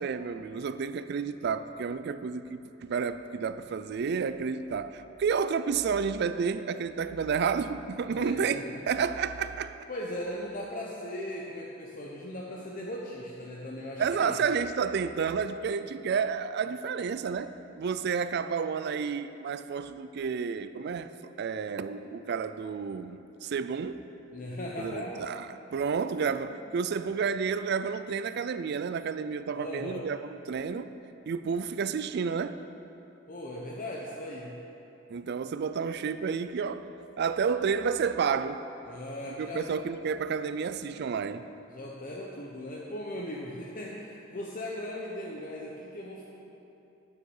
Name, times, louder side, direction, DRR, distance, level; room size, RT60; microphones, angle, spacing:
voice 1, 0.0-9.8 14.0-24.0 24.8-25.5 25.7-30.9 31.3-32.6 35.1-36.9 37.2-38.6 39.4-41.5, right 6 dB, 55° right, 0.4 m, -31 dB
voice 2, 8.0-9.0 9.9-14.4 24.3-25.3 26.8-26.9 29.5-30.1 33.3-34.6 38.9-39.7 41.7-46.2, left 1 dB, 45° left, 0.8 m, -38 dB
9.4 x 6.4 x 7.1 m
head